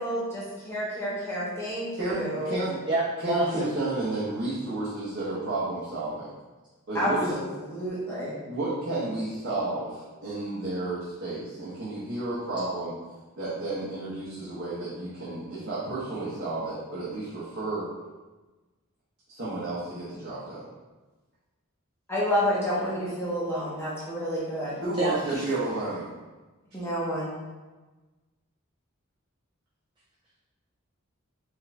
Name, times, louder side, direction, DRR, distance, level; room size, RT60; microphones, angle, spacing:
voice 1, 0.0-2.6 6.9-8.4 22.1-24.8 26.7-27.4, equal, 10° left, -8 dB, 0.9 m, -29 dB
voice 2, 2.0-2.8 3.2-6.3 6.9-7.4 8.5-13.0 13.4-17.9 19.3-20.7 24.8-26.1, right 2 dB, 50° right, -10 dB, 1.1 m, -31 dB
voice 3, 2.9-3.7 24.9-25.4, right 2 dB, 20° right, -6 dB, 0.5 m, -27 dB
4.7 x 2.7 x 3.3 m, 1.2 s
head